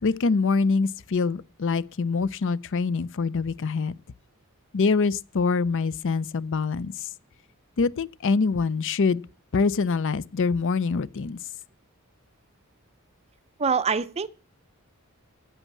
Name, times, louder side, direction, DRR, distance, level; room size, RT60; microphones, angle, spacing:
voice 1, 0.0-4.0 4.7-7.1 7.8-9.2 9.5-11.4, left 4 dB, 55° left, 0.5 m, -25 dB
voice 2, 13.6-14.3, right 5 dB, 30° right, 0.5 m, -24 dB
11.0 x 8.4 x 7.2 m
head